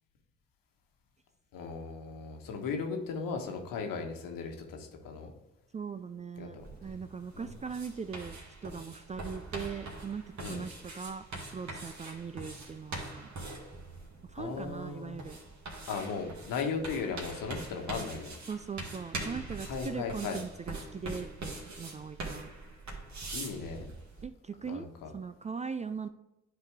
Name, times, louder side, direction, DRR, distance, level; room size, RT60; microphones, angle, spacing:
voice 1, 1.5-5.3 6.4-6.6 7.4-7.5 10.4-10.6 14.4-15.2 15.9-18.3 19.6-20.4 23.3-23.9 24.6-25.1, left 5 dB, 65° left, 3 dB, 1.4 m, -37 dB
voice 2, 5.7-11.2 11.5-13.3 14.3-15.4 18.5-22.5 24.2-24.9 25.1-26.1, right 6 dB, 20° right, 11 dB, 0.3 m, -40 dB
sound 1, 6.6-24.2, right 2 dB, 50° right, 2.0 m, -43 dB
10.5 x 4.0 x 3.5 m, 0.94 s
hypercardioid pair, 50°, 35 cm